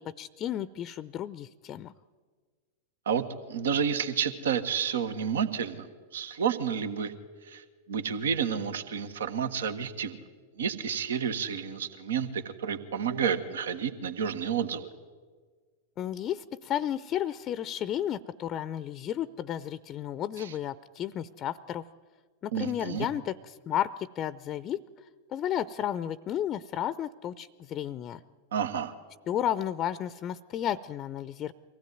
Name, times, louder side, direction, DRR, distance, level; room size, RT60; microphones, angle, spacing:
voice 1, 0.0-1.9 16.0-21.8 22.4-24.8 25.3-28.2 29.3-31.5, left 11 dB, 35° left, 16 dB, 0.6 m, -33 dB
voice 2, 3.0-7.1 7.4-10.2 10.6-14.9 20.4-20.5 22.5-23.1 28.5-28.9, right 7 dB, 70° right, 10 dB, 1.4 m, -30 dB
24.0 x 16.5 x 9.3 m, 1.5 s
figure-of-eight pair, 95°, 0 cm